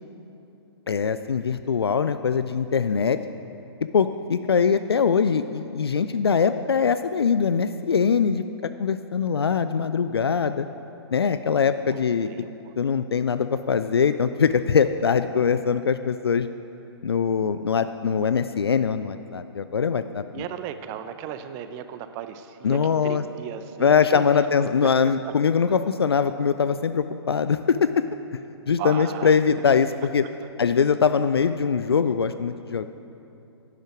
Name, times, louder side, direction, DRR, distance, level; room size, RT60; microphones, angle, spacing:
voice 1, 0.9-3.2 3.9-8.4 8.8-10.7 11.1-12.3 12.8-16.5 17.0-20.4 22.6-23.2 23.8-28.0 28.3-28.4 28.7-30.3 30.6-32.8, left 6 dB, 65° left, 11 dB, 0.4 m, -22 dB
voice 2, 12.3-12.7 20.3-24.4 24.8-24.9 28.8-29.4 30.4-30.5, right 9 dB, 20° right, 10 dB, 0.5 m, -36 dB
11.0 x 9.1 x 5.9 m, 2.9 s
figure-of-eight pair, 120°, 14 cm